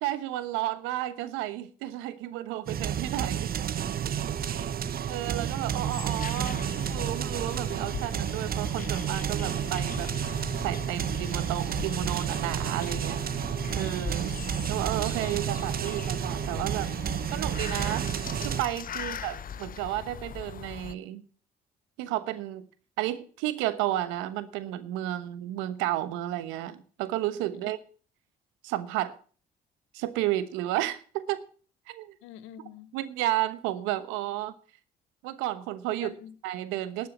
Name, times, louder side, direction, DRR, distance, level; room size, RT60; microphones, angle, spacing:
voice 1, 0.0-3.5 4.5-4.7 5.1-10.1 10.6-13.4 13.8-14.3 14.7-16.9 17.3-18.1 18.4-21.2 22.0-22.6 23.0-27.8 28.6-29.2 29.9-31.4 31.9-32.1 32.9-34.5 35.2-36.1 36.4-37.1, right 14 dB, 80° right, 1.1 m, -32 dB
sound 1, 2.7-18.6, right 9 dB, 50° right, 0.8 m, -31 dB
voice 2, 4.3-5.1 19.0-19.1 27.5-27.7 32.2-33.0 36.0-36.4 37.0-37.1, left 11 dB, 80° left, 1.2 m, -48 dB
sound 2, 5.8-20.9, left 8 dB, 45° left, 0.7 m, -40 dB
12.0 x 6.6 x 8.0 m
hypercardioid pair, 55°, 20 cm